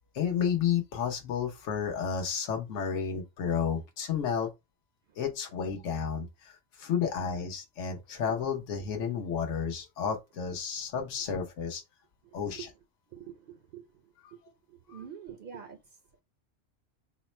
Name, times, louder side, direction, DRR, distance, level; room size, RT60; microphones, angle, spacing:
voice 1, 0.1-4.5 5.2-11.8 12.3-12.7 14.9-15.0, left 7 dB, 70° left, 1.1 m, -31 dB
voice 2, 13.1-13.9 14.7-15.8, right 8 dB, 50° right, 0.7 m, -45 dB
4.0 x 2.1 x 4.2 m
omnidirectional pair, 1.3 m